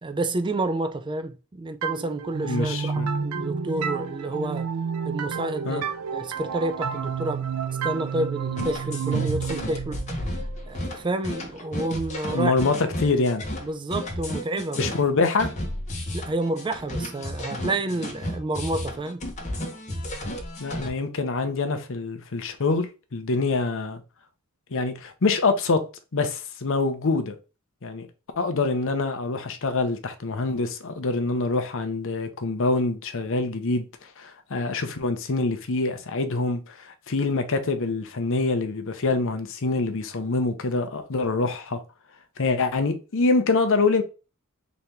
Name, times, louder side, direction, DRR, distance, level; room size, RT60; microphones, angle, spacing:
voice 1, 0.0-4.7 5.0-5.8 6.1-7.5 7.8-10.0 10.7-12.5 13.6-14.9 16.1-19.2, right 2 dB, 20° right, 0.4 m, -29 dB
sound 1, 1.8-11.3, right 6 dB, 80° right, 0.5 m, -30 dB
voice 2, 2.4-3.1 5.6-5.8 12.3-13.4 14.8-15.5 20.6-24.0 24.7-25.8 26.1-27.4 27.8-28.1 28.4-33.9 34.2-41.8 42.4-44.0, left 3 dB, 65° left, 0.7 m, -25 dB
sound 2, 8.6-20.9, left 1 dB, 35° left, 1.1 m, -32 dB
4.0 x 3.0 x 3.4 m
head